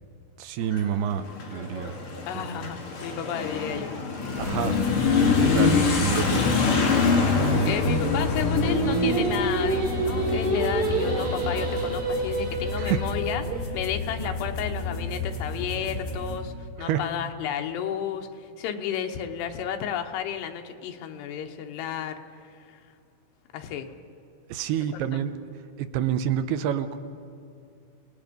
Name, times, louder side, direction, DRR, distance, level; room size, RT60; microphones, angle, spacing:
voice 1, 0.4-2.0 2.5-2.7 4.4-4.8 5.1-6.5 12.8-13.1 13.5-13.6 14.2-14.3 16.8-17.1 24.5-25.3 25.8-27.0, right 9 dB, 80° right, 9 dB, 2.7 m, -28 dB
Motorcycle / Accelerating revving vroom, 0.6-12.9, left 4 dB, 55° left, 4.0 m, -26 dB
voice 2, 2.3-4.0 7.6-13.4 13.7-22.2 22.5-22.7 23.5-23.9 24.9-25.1, left 8 dB, 85° left, 5 dB, 3.2 m, -32 dB
sound 1, 4.4-16.4, left 2 dB, 35° left, 2.3 m, -33 dB
Singing, 8.6-13.7, right 3 dB, 50° right, 4.9 m, -28 dB
27.0 x 19.0 x 5.3 m, 2.5 s
omnidirectional pair, 4.8 m